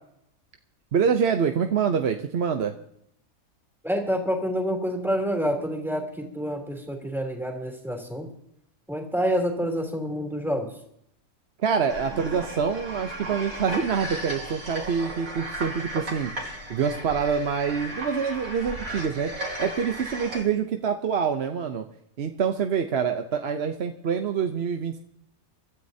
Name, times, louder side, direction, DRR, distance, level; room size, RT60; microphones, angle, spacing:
voice 1, 0.9-2.7 11.6-16.3 16.7-19.3 19.6-21.9 22.2-25.0, right 6 dB, 55° right, 6 dB, 0.9 m, -26 dB
voice 2, 3.8-8.3 8.9-10.7, equal, ahead, 1 dB, 3.1 m, -28 dB
sound 1, 11.9-20.4, right 1 dB, 70° right, 3.1 m, -35 dB
24.0 x 13.0 x 2.8 m, 0.74 s
omnidirectional pair, 1.5 m